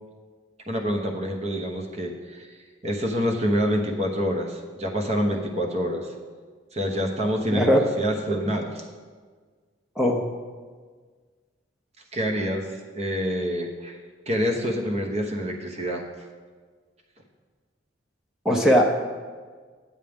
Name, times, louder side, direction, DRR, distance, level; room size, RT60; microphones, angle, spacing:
voice 1, 0.7-2.5 2.8-6.1 6.7-7.7 8.0-8.8 12.1-12.7 12.9-14.0 14.3-16.0, equal, 35° right, 1 dB, 1.0 m, -26 dB
voice 2, 7.5-7.8 10.0-10.3 18.4-18.8, equal, ahead, 0 dB, 0.6 m, -19 dB
9.0 x 8.2 x 3.6 m, 1.5 s
head